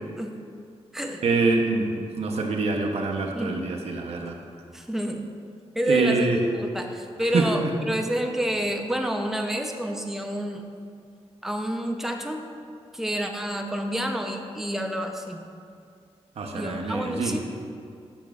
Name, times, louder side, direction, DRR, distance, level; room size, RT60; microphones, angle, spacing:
voice 1, 1.2-4.4 5.9-6.4 7.2-7.7 16.4-17.4, right 3 dB, 75° right, 1 dB, 0.7 m, -25 dB
voice 2, 4.7-5.3 5.7-10.6 11.4-12.4 12.9-15.4 16.5-17.4, right 1 dB, 5° right, 3 dB, 0.5 m, -28 dB
8.5 x 6.0 x 2.3 m, 2.3 s
wide cardioid pair, 130°, 11 cm